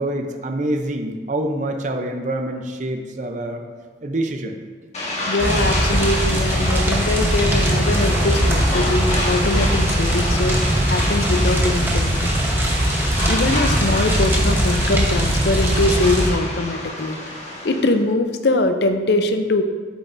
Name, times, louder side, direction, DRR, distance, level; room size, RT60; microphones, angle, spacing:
voice 1, 0.0-3.7 4.0-4.6, right 1 dB, 45° right, 4 dB, 0.6 m, -26 dB
sound 1, 4.9-18.0, left 1 dB, 40° left, 1.6 m, -28 dB
voice 2, 5.3-12.3 13.3-17.2 17.6-19.6, left 2 dB, 60° left, 7 dB, 0.6 m, -22 dB
sound 2, 5.4-16.3, right 1 dB, 15° right, 1.0 m, -20 dB
8.1 x 7.9 x 2.6 m, 1.5 s
head